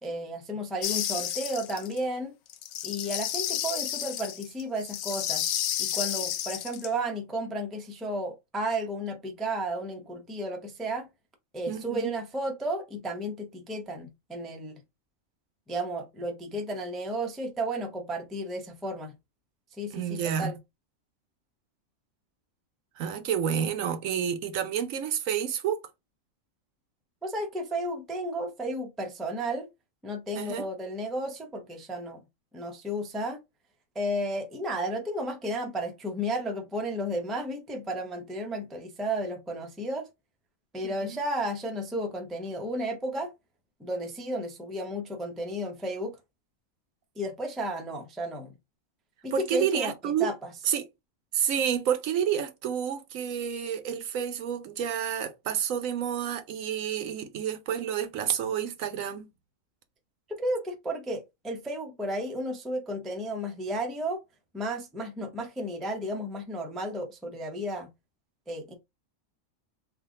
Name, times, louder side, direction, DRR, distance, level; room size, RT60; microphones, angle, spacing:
voice 1, 0.0-2.4 2.8-5.5 5.8-11.1 11.5-14.8 15.7-19.1 19.7-20.6 27.2-29.7 30.0-32.2 32.5-33.4 33.9-40.1 40.7-43.3 43.8-46.2 47.2-48.5 49.2-49.9 50.2-50.3 60.3-64.2 64.5-67.9 68.5-68.7, right 1 dB, ahead, 0.4 m, -33 dB
sound 1, 0.8-2.0 2.5-6.9, left 11 dB, 80° left, 1.0 m, -31 dB
voice 2, 11.7-12.1 19.9-20.5 23.0-25.8 30.3-30.6 40.8-41.2 49.3-50.3 50.6-50.9 51.3-59.3, right 8 dB, 80° right, 1.1 m, -29 dB
3.6 x 2.4 x 3.6 m
omnidirectional pair, 1.4 m